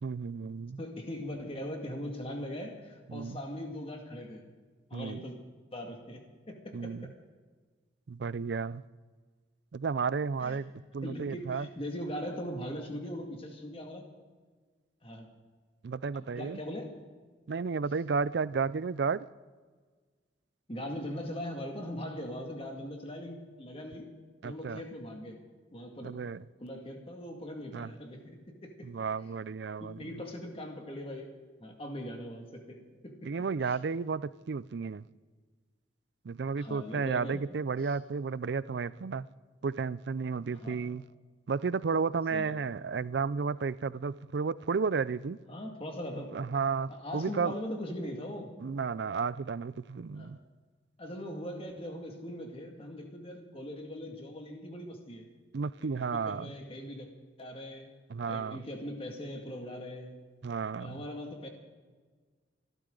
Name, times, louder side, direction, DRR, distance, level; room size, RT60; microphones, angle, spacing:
voice 1, 0.0-0.8 3.1-3.4 4.9-5.2 6.7-7.1 8.1-8.8 9.7-11.7 15.8-16.6 17.5-19.3 24.4-24.8 26.0-26.5 27.7-27.9 28.8-30.1 33.2-35.0 36.2-39.3 39.6-41.0 41.5-45.4 46.2-47.5 48.6-50.4 55.5-56.5 58.1-58.6 60.4-61.0, right 5 dB, 65° right, 0.4 m, -33 dB
voice 2, 0.8-4.4 4.9-5.4 5.7-7.1 10.4-10.6 11.0-14.0 15.0-15.3 16.1-16.9 20.7-24.1 24.4-25.4 25.7-26.2 26.6-28.9 29.8-31.3 31.6-33.2 33.6-33.8 36.6-37.4 37.8-38.0 40.5-40.9 42.3-42.6 45.5-46.4 46.9-48.5 50.1-50.4 51.0-55.3 55.8-57.1 57.4-57.9 58.3-60.2 60.8-61.5, equal, 30° left, 2.1 m, -40 dB
26.5 x 12.0 x 3.9 m
head